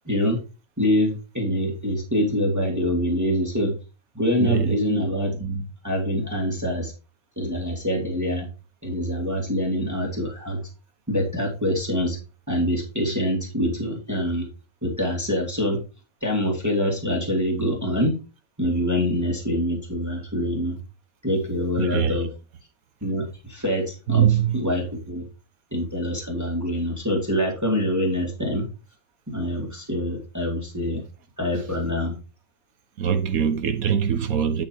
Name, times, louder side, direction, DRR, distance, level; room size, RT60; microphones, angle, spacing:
voice 1, 0.1-0.4 0.8-3.7 4.1-6.9 7.4-8.5 8.8-10.6 11.1-12.2 12.5-14.5 14.8-15.8 16.2-18.2 18.6-20.8 21.2-22.3 23.0-24.3 24.5-25.2 25.7-28.6 29.3-31.0 31.4-32.1, equal, 10° right, 2.5 m, -25 dB
voice 2, 4.4-4.8 21.8-22.3 24.1-24.6 33.0-34.6, right 8 dB, 90° right, 1.5 m, -22 dB
11.0 x 4.0 x 4.7 m
omnidirectional pair, 1.5 m